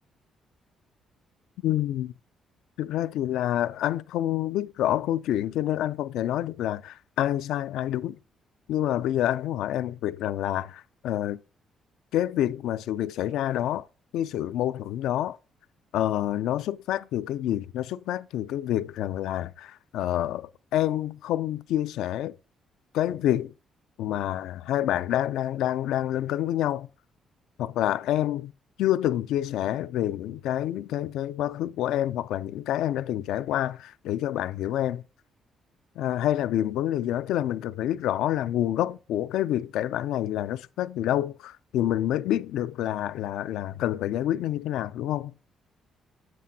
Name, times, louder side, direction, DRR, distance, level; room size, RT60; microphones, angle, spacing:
voice 1, 1.6-2.1 2.8-8.2 8.7-11.4 12.1-13.9 14.1-15.4 15.9-22.3 22.9-23.5 24.0-26.9 27.6-28.5 28.8-35.0 36.0-45.3, left 12 dB, 90° left, 0.3 m, -27 dB
7.6 x 7.4 x 2.7 m
cardioid pair, 90°, 0 cm